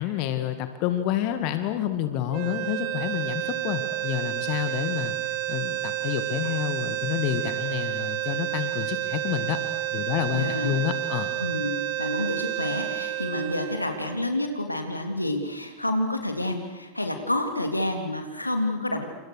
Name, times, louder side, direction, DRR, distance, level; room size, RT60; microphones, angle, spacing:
voice 1, 0.0-9.6 9.9-11.3, left 11 dB, 45° left, 9 dB, 2.2 m, -29 dB
sound 1, 2.3-14.5, right 13 dB, 45° right, 1.4 m, -30 dB
voice 2, 10.3-10.8 11.4-19.0, left 1 dB, 85° left, 5 dB, 3.4 m, -29 dB
29.5 x 28.0 x 6.7 m, 1.1 s
figure-of-eight pair, 90°, 0 cm